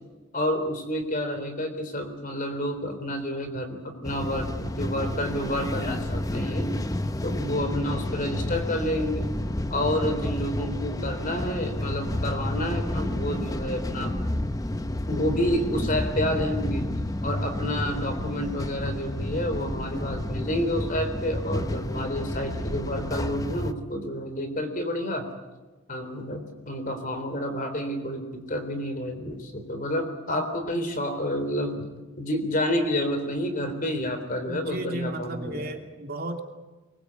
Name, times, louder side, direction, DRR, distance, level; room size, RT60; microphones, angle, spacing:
voice 1, 0.3-6.7 7.2-9.3 9.7-14.1 15.1-16.9 17.2-25.3 25.9-31.9 32.2-35.6, equal, 40° left, 7 dB, 3.7 m, -29 dB
sound 1, 4.0-23.7, left 1 dB, 15° left, 0.8 m, -30 dB
voice 2, 34.5-36.4, right 1 dB, 45° right, 3 dB, 2.7 m, -34 dB
23.5 x 22.0 x 8.3 m, 1.2 s
head